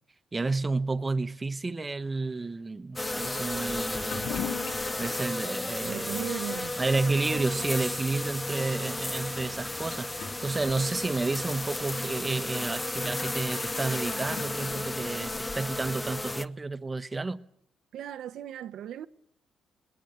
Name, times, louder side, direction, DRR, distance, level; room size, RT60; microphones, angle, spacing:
voice 1, 0.3-4.3 5.0-6.3 6.8-17.4, right 3 dB, 25° right, 1.1 m, -31 dB
sound 1, 3.0-16.5, left 2 dB, 15° left, 1.0 m, -33 dB
Toilet flush / Liquid, 3.8-15.4, left 7 dB, 85° left, 2.8 m, -44 dB
voice 2, 5.8-6.8 17.9-19.1, right 10 dB, 75° right, 0.9 m, -37 dB
20.5 x 18.0 x 8.0 m
cardioid pair, 90°, 0 cm